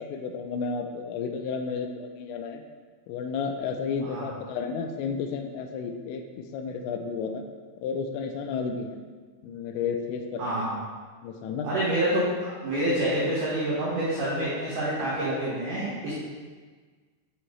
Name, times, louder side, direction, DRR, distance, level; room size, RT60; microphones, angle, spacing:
voice 1, 0.1-2.6 3.1-7.4 7.8-9.0 9.4-10.7 11.2-11.7, left 5 dB, 85° left, 5 dB, 3.1 m, -32 dB
voice 2, 10.4-10.8 11.6-16.1, right 1 dB, 85° right, -8 dB, 1.8 m, -27 dB
8.0 x 6.3 x 3.1 m, 1.5 s
omnidirectional pair, 5.9 m